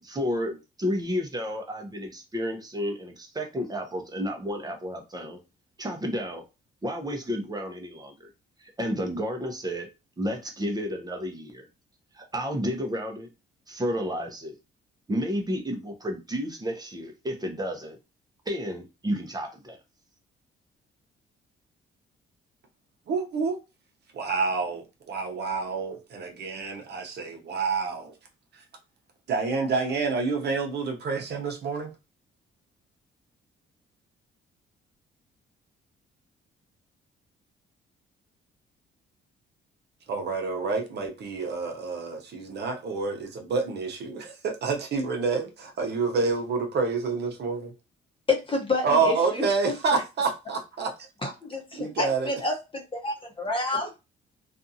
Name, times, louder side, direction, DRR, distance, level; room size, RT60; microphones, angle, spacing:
voice 1, 0.0-5.4 5.8-6.4 6.8-8.3 8.6-9.9 10.2-11.7 12.1-13.3 13.7-14.5 15.1-18.0 18.5-19.8, equal, 20° right, 0.7 m, -31 dB
voice 2, 23.1-23.6 24.1-28.1 28.5-28.6 29.3-31.9 40.1-47.7 48.8-50.9 51.7-52.3, right 4 dB, 55° right, 0.7 m, -28 dB
voice 3, 48.3-50.0 51.2-54.0, left 3 dB, 25° left, 0.9 m, -29 dB
2.6 x 2.4 x 2.6 m
cardioid pair, 90°, 20 cm